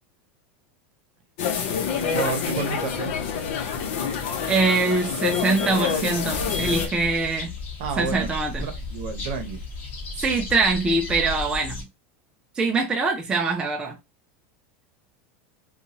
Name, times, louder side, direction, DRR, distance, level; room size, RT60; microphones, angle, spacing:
sound 1, 1.4-6.9, left 7 dB, 65° left, 0.7 m, -27 dB
voice 1, 2.1-3.1 7.8-8.3 8.6-9.6, right 5 dB, 60° right, 0.8 m, -30 dB
voice 2, 4.5-7.5 8.0-8.7 10.2-11.9 12.6-14.0, right 3 dB, 15° right, 0.4 m, -23 dB
sound 2, 6.2-11.8, left 3 dB, 30° left, 0.9 m, -34 dB
2.7 x 2.3 x 2.9 m
supercardioid pair, 155°, 6 cm